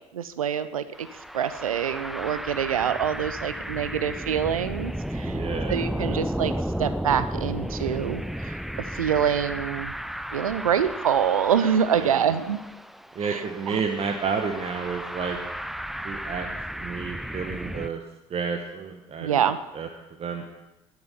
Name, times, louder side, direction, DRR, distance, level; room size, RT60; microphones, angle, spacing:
voice 1, 0.1-1.1 1.3-5.4 5.7-6.5 6.8-9.9 10.3-12.6 13.2-13.8 19.2-19.6, right 8 dB, 80° right, 13 dB, 0.5 m, -26 dB
sound 1, 0.9-17.9, equal, ahead, 0.4 m, -33 dB
voice 2, 5.1-5.8 12.0-12.2 13.1-15.4 16.0-16.5 16.8-18.0 18.3-19.4 19.7-19.9 20.2-20.4, right 5 dB, 35° right, 3 dB, 1.1 m, -30 dB
10.5 x 10.5 x 5.5 m, 1.0 s
figure-of-eight pair, 55°, 18 cm